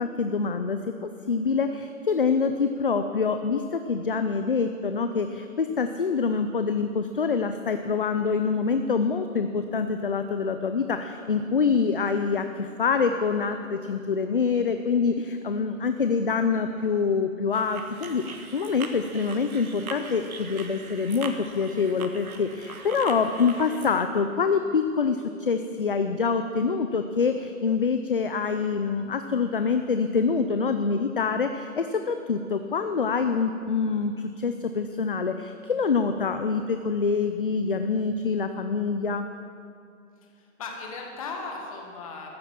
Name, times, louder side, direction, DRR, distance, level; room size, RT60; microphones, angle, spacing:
voice 1, 0.0-39.2, left 5 dB, 40° left, 8 dB, 0.5 m, -26 dB
sound 1, 17.5-24.0, right 4 dB, 90° right, 1.6 m, -41 dB
voice 2, 40.3-42.3, left 4 dB, 25° left, 1 dB, 1.7 m, -37 dB
14.0 x 10.0 x 7.2 m, 2.4 s
hypercardioid pair, 170°, 42 cm